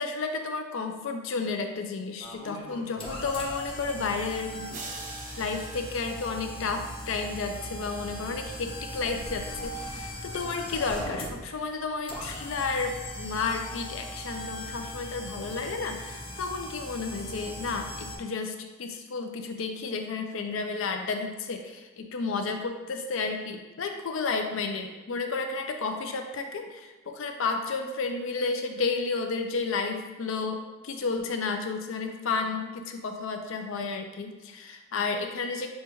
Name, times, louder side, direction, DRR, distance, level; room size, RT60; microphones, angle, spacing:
voice 1, 0.0-4.7 5.4-35.7, left 4 dB, 70° left, 5 dB, 0.5 m, -32 dB
sound 1, 2.2-18.2, equal, 25° left, 0.7 m, -39 dB
sound 2, 4.7-7.1, right 4 dB, 40° right, 0.5 m, -44 dB
6.4 x 2.3 x 3.0 m, 1.2 s
head